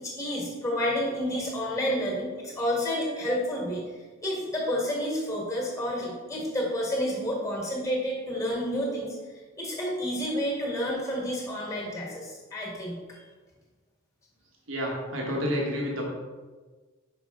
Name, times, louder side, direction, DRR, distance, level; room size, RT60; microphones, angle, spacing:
voice 1, 0.0-3.8 4.2-9.1 9.6-13.2, equal, 15° left, -2 dB, 1.4 m, -30 dB
voice 2, 14.7-16.0, equal, 65° right, -1 dB, 1.1 m, -29 dB
5.4 x 5.4 x 3.5 m, 1.4 s
head